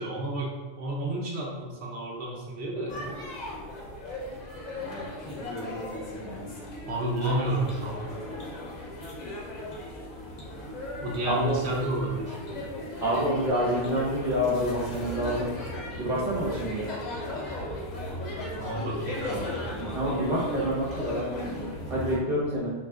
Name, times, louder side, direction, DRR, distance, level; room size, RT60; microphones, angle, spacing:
voice 1, 0.0-3.0 6.9-8.0 11.0-12.4 18.6-19.3, right 1 dB, 65° right, -3 dB, 0.8 m, -30 dB
sound 1, 2.9-22.2, left 1 dB, 45° left, 0.6 m, -36 dB
voice 2, 11.3-11.6 13.0-15.5 16.0-16.9 19.8-21.3 21.9-22.7, equal, 5° right, -6 dB, 0.7 m, -27 dB
3.1 x 2.4 x 3.5 m, 1.2 s
omnidirectional pair, 1.2 m